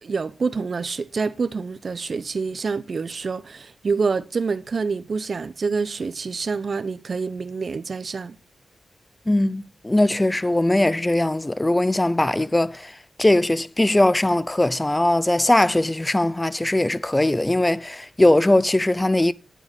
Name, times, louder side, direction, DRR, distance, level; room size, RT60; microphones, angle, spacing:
voice 1, 0.0-8.4, right 4 dB, 50° right, 0.7 m, -27 dB
voice 2, 9.3-19.3, left 1 dB, 15° left, 0.6 m, -20 dB
9.2 x 7.8 x 5.6 m
wide cardioid pair, 90°, 0 cm